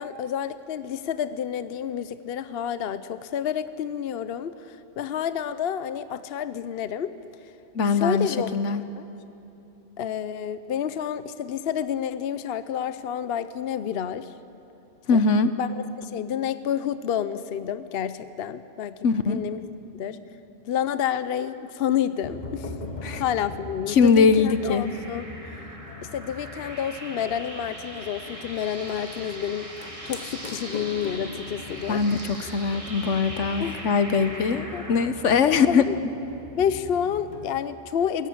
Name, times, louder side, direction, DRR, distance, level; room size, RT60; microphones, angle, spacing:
voice 1, 0.0-7.1 7.9-8.5 9.0-9.1 10.0-14.3 15.1-15.2 15.6-15.7 16.0-19.0 19.3-19.6 19.9-20.2 20.6-22.7 23.2-25.3 26.0-29.7 30.0-32.0 33.6-33.8 34.7-34.8 35.4-36.0 36.6-38.3, left 9 dB, 60° left, 13 dB, 0.8 m, -29 dB
voice 2, 7.7-8.8 15.1-15.5 19.0-19.4 23.0-23.2 23.9-24.8 31.9-35.9, left 5 dB, 75° left, 11 dB, 1.3 m, -21 dB
sound 1, 22.2-37.7, left 3 dB, 35° left, 1.6 m, -41 dB
sound 2, 24.3-35.1, right 1 dB, 25° right, 2.0 m, -40 dB
22.0 x 17.5 x 8.6 m, 2.9 s
omnidirectional pair, 1.3 m